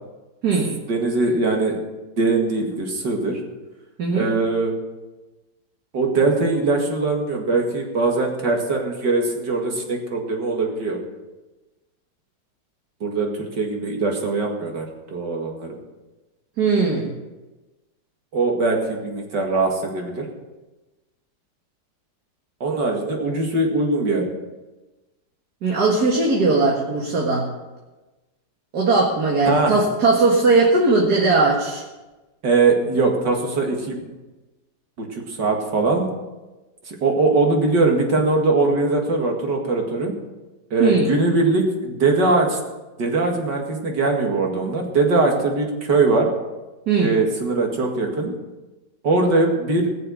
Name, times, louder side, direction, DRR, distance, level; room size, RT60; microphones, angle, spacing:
voice 1, 0.9-1.8 2.2-3.4 4.1-4.7 5.9-11.0 13.0-15.8 18.3-20.3 22.6-24.3 29.5-29.7 32.4-34.0 35.1-36.1 36.9-40.1 40.7-42.6 43.0-46.3 47.0-48.3 49.0-49.9, right 3 dB, 85° right, 1 dB, 2.7 m, -21 dB
voice 2, 4.0-4.3 16.6-17.1 25.6-27.4 28.7-31.8 40.8-41.1 46.9-47.1, right 3 dB, 65° right, -2 dB, 2.3 m, -19 dB
19.0 x 6.8 x 6.5 m, 1.1 s
omnidirectional pair, 1.8 m